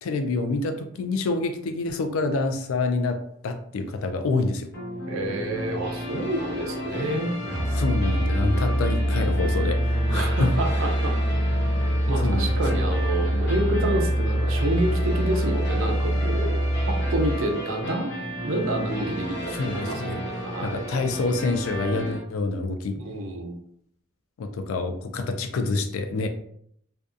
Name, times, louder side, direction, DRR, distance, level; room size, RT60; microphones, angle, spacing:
voice 1, 0.0-4.7 7.7-10.5 12.2-12.9 19.5-20.2 20.6-22.9 24.4-26.3, left 3 dB, 85° left, 7 dB, 0.4 m, -27 dB
sound 1, 4.7-22.2, equal, 60° left, 0.8 m, -34 dB
voice 2, 5.1-7.4 10.1-11.2 11.5-11.7 12.1-16.6 16.9-18.1 18.4-20.8 23.0-23.5, right 1 dB, 75° right, 3 dB, 0.5 m, -28 dB
Musical instrument, 7.5-17.4, equal, ahead, 1.1 m, -24 dB
2.6 x 2.2 x 2.4 m, 0.69 s
head